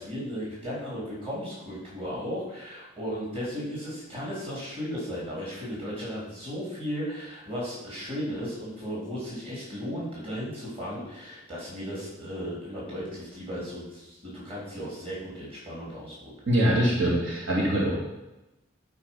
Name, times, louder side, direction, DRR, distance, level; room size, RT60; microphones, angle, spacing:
voice 1, 0.0-16.3, equal, 25° right, -6 dB, 3.7 m, -35 dB
voice 2, 16.5-18.0, right 1 dB, 70° right, -5 dB, 2.2 m, -23 dB
11.0 x 4.9 x 5.6 m, 1.0 s
head